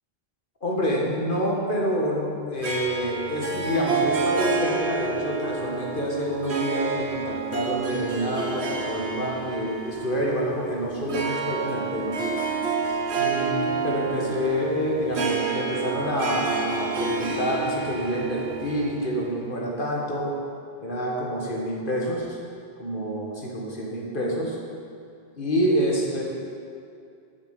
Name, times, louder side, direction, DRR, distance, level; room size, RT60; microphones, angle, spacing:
voice 1, 0.6-12.2 13.2-20.4 20.8-22.4 22.8-24.6 25.4-26.2, equal, 55° left, -3 dB, 1.9 m, -27 dB
Harp, 2.6-19.4, right 4 dB, 85° right, 1.3 m, -29 dB
7.3 x 7.3 x 8.3 m, 2.4 s
omnidirectional pair, 1.1 m